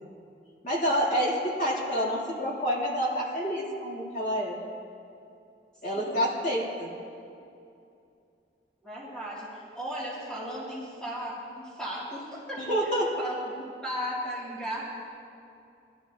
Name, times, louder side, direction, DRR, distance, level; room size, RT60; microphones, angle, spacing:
voice 1, 0.6-4.6 5.8-6.9 12.6-13.1, equal, 45° left, -5 dB, 2.9 m, -28 dB
voice 2, 5.8-6.1 8.8-12.9 13.2-14.8, equal, 5° left, -8 dB, 2.5 m, -36 dB
21.5 x 13.5 x 2.8 m, 2.6 s
head